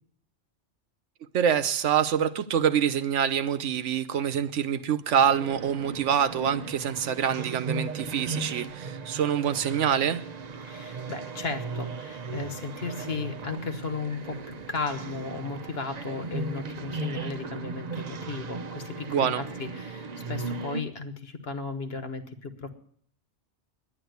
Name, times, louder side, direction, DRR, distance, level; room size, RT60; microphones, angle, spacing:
voice 1, 1.3-10.2 19.1-19.4, right 8 dB, 90° right, 1.1 m, -25 dB
sound 1, 5.1-20.8, right 4 dB, 45° right, 0.7 m, -37 dB
voice 2, 10.6-22.7, left 4 dB, 60° left, 1.5 m, -35 dB
10.5 x 10.0 x 9.3 m
omnidirectional pair, 1.2 m